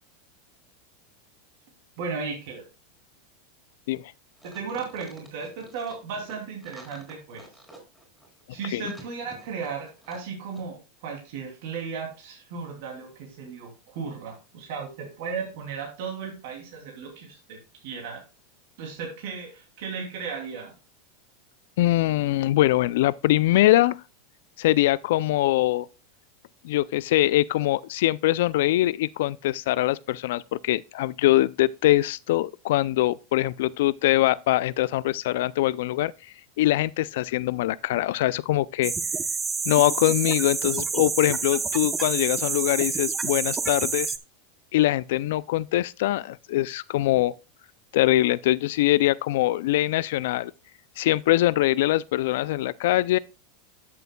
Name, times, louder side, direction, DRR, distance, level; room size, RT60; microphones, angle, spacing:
voice 1, 2.0-2.6 4.4-7.5 8.5-18.2 18.8-20.7, right 5 dB, 65° right, 2.8 m, -35 dB
sound 1, 4.4-10.3 10.5-10.6, right 1 dB, 5° right, 3.6 m, -49 dB
voice 2, 21.8-24.0 24.6-25.9 26.6-36.1 36.6-38.9 39.7-44.1 44.7-47.3 47.9-50.5 51.0-53.2, left 15 dB, 75° left, 0.3 m, -23 dB
sound 2, 38.8-44.2, right 5 dB, 20° right, 0.7 m, -28 dB
12.0 x 6.8 x 2.2 m
supercardioid pair, 130°, 0 cm